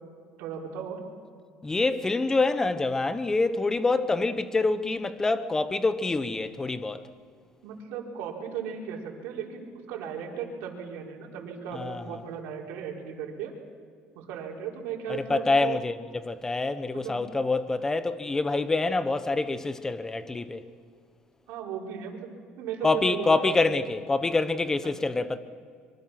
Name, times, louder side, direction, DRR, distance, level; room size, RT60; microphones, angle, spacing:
voice 1, 0.4-1.0 7.6-13.5 14.1-15.8 16.9-17.2 21.5-22.3 22.6-23.7 24.8-24.9, right 7 dB, 80° right, 4.8 m, -36 dB
voice 2, 1.6-7.0 11.7-12.2 15.1-20.6 22.8-25.4, left 3 dB, 15° left, 1.1 m, -26 dB
25.0 x 24.5 x 6.0 m
cardioid pair, 130°, 3 cm